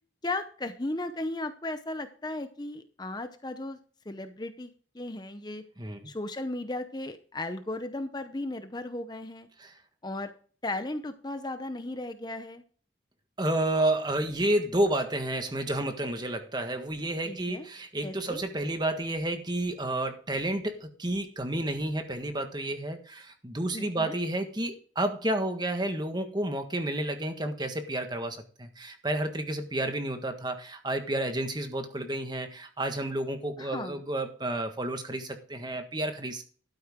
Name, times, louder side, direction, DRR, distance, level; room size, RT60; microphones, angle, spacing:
voice 1, 0.2-3.8 4.1-5.6 6.0-9.5 10.0-10.3 10.6-12.6 17.3-17.7 18.0-18.4 23.7-24.1 33.6-34.0, left 2 dB, 20° left, 9 dB, 0.7 m, -36 dB
voice 2, 13.4-36.4, right 1 dB, 20° right, 7 dB, 1.5 m, -30 dB
12.5 x 9.4 x 3.7 m, 0.43 s
head